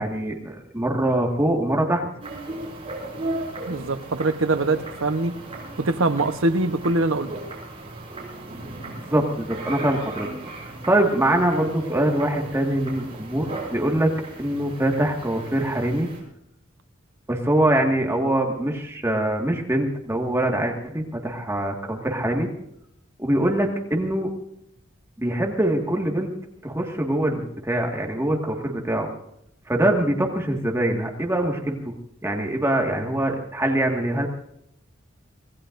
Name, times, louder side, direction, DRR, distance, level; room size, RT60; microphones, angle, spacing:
voice 1, 0.0-2.1 9.0-10.3 10.9-14.1 14.4-16.1 17.3-22.5 23.2-24.3 25.2-26.3 26.6-29.1 29.7-31.9 32.2-34.3, right 1 dB, 15° right, 1 dB, 1.8 m, -23 dB
sound 1, 2.2-16.2, right 2 dB, 30° right, 6.4 m, -36 dB
voice 2, 3.7-5.3 5.8-7.3, right 2 dB, 80° right, 9 dB, 1.0 m, -23 dB
26.0 x 18.0 x 2.6 m, 0.76 s
head